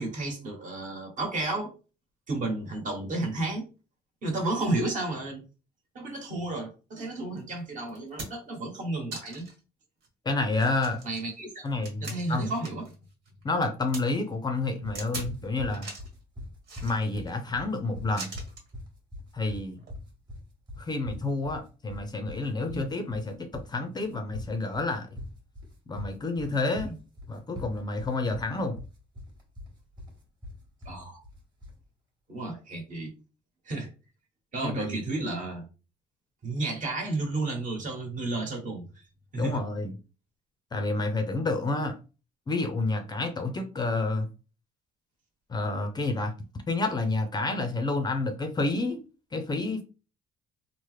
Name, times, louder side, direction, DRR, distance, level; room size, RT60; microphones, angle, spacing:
voice 1, 0.0-1.7 2.3-3.7 4.2-5.4 5.9-9.5 11.0-11.6 12.0-12.8 22.7-22.8 26.9-27.0 30.8-31.2 32.3-33.1 33.6-33.9 34.5-35.7 36.4-38.9 39.3-39.6, right 2 dB, 50° right, 1.3 m, -32 dB
sound 1, 7.4-7.5 7.9-8.6 9.1-9.6 10.0-10.1 10.5-12.9 13.2-14.0 14.9-15.3 15.7-16.1 16.6-17.3 18.2-18.7 19.8-19.9, right 3 dB, 75° right, 1.5 m, -41 dB
voice 2, 10.3-11.0 11.6-12.5 13.4-15.9 16.8-18.3 19.3-19.8 20.8-25.1 25.9-26.9 27.3-28.8 34.6-35.0 39.3-39.9 40.7-42.0 42.5-44.3 45.5-46.3 46.7-49.0 49.3-49.8, left 3 dB, 25° left, 0.4 m, -29 dB
sound 2, 14.8-31.8, left 1 dB, 25° right, 1.1 m, -42 dB
3.1 x 2.0 x 3.1 m
cardioid pair, 110°, 17 cm